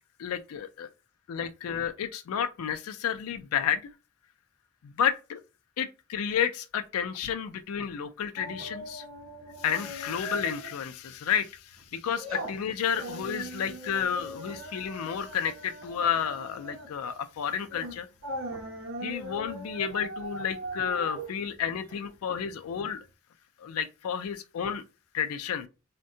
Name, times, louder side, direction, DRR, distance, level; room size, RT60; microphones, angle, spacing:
voice 1, 0.2-0.9 1.3-3.8 4.8-5.4 5.8-9.0 9.6-18.1 19.0-23.0 23.6-24.8 25.1-25.7, left 8 dB, 90° left, 0.4 m, -31 dB
sound 1, 8.4-10.8 11.1-11.3 11.7-22.7 23.0-23.1, right 1 dB, 65° right, 0.7 m, -40 dB
3.5 x 2.2 x 2.6 m
head